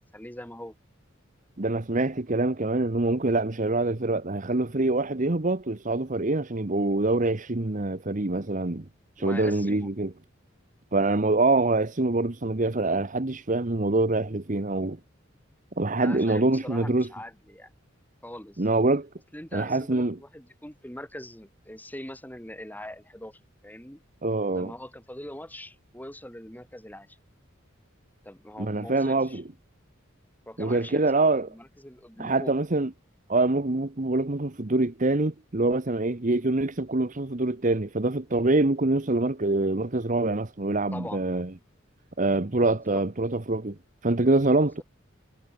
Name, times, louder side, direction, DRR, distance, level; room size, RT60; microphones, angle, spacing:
voice 1, 0.1-0.7 9.2-9.9 16.0-17.7 18.2-18.7 19.3-24.0 24.5-27.2 28.2-29.4 30.5-32.6 40.9-41.2 42.9-43.0, left 1 dB, 10° left, 7.6 m, -42 dB
voice 2, 1.6-8.8 9.2-10.1 10.9-15.0 15.8-17.1 18.6-19.1 19.5-20.2 24.2-24.7 28.6-29.4 30.6-31.5 32.2-32.9 33.3-41.5 42.2-43.8 44.0-44.8, right 2 dB, 40° right, 1.1 m, -25 dB
head